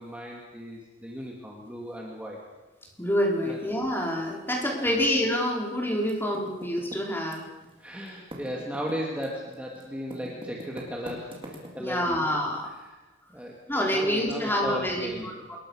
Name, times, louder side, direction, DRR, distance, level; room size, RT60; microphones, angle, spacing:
voice 1, 0.0-2.4 3.5-3.6 4.7-5.0 7.8-12.2 13.3-15.3, equal, 5° right, -2 dB, 2.8 m, -36 dB
voice 2, 3.0-7.4 11.8-12.7 13.7-15.6, equal, 10° left, -1 dB, 5.0 m, -27 dB
Typing, 6.0-7.7 8.0-12.0, equal, 30° right, 4.6 m, -42 dB
27.0 x 22.0 x 6.7 m, 1.2 s
head